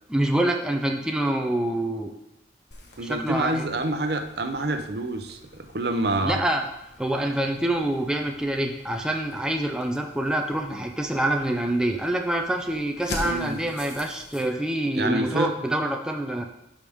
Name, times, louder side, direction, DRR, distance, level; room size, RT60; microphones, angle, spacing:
voice 1, 0.1-2.1 3.0-3.6 6.2-6.6 7.0-16.4, right 1 dB, 5° right, 3 dB, 0.4 m, -26 dB
sound 1, 2.7-14.5, left 2 dB, 65° left, 1.3 m, -44 dB
voice 2, 3.0-6.4 13.2-13.6 14.9-15.5, right 2 dB, 55° right, 7 dB, 0.7 m, -27 dB
12.0 x 5.1 x 3.6 m, 0.90 s
head